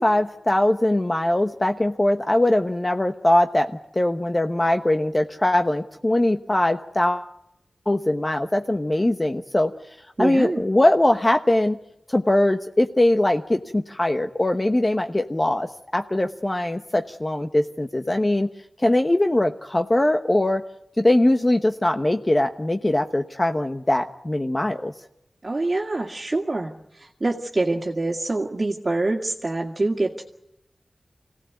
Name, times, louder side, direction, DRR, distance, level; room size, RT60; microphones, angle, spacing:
voice 1, 0.0-7.3 7.9-11.8 12.1-18.5 18.8-20.6 21.0-24.9, left 1 dB, 25° left, 6 dB, 1.1 m, -21 dB
voice 2, 10.2-10.6 25.4-30.2, right 2 dB, 40° right, -1 dB, 2.1 m, -25 dB
26.5 x 17.5 x 9.4 m, 0.84 s
wide cardioid pair, 70°, 0 cm